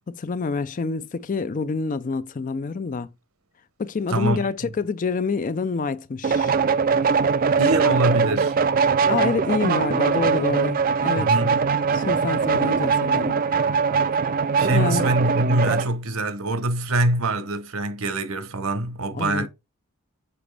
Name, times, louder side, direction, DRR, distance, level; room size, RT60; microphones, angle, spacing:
voice 1, 0.1-3.1 3.8-6.5 9.1-11.3 11.9-13.4 14.7-15.1 19.1-19.5, left 4 dB, 35° left, 0.4 m, -27 dB
voice 2, 4.1-4.5 7.6-8.6 11.2-11.6 13.5-13.8 14.6-19.5, right 2 dB, 70° right, 1.0 m, -24 dB
sound 1, 6.2-15.9, right 5 dB, 40° right, 0.4 m, -21 dB
6.9 x 4.9 x 3.3 m
head